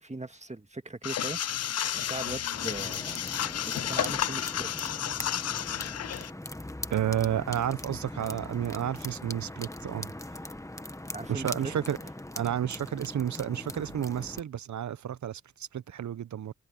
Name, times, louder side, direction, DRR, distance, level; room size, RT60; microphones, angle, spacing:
voice 1, 0.0-1.4 2.0-3.2 3.6-4.9 11.1-11.7, right 2 dB, 25° right, 1.8 m, -39 dB
sound 1, 1.0-6.3, left 10 dB, 60° left, 0.5 m, -32 dB
sound 2, 2.5-14.4, left 1 dB, 10° left, 1.4 m, -41 dB
voice 2, 6.9-10.1 11.3-12.0 12.3-16.5, right 10 dB, 75° right, 0.7 m, -31 dB
cardioid pair, 45°, 29 cm